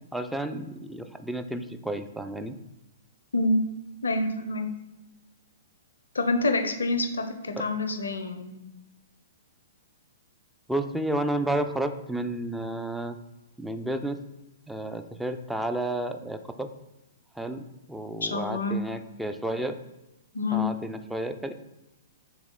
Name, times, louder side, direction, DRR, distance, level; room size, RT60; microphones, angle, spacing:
voice 1, 0.1-2.6 7.6-7.7 10.7-13.2 13.6-14.2 14.7-16.7 17.4-17.6 17.9-19.8 20.5-21.5, right 1 dB, 5° right, 7 dB, 0.3 m, -31 dB
voice 2, 4.0-4.7 6.1-8.6 18.2-18.8 20.3-20.7, left 2 dB, 75° left, 7 dB, 0.5 m, -27 dB
3.6 x 3.0 x 3.6 m, 1.0 s
figure-of-eight pair, 115°, 0 cm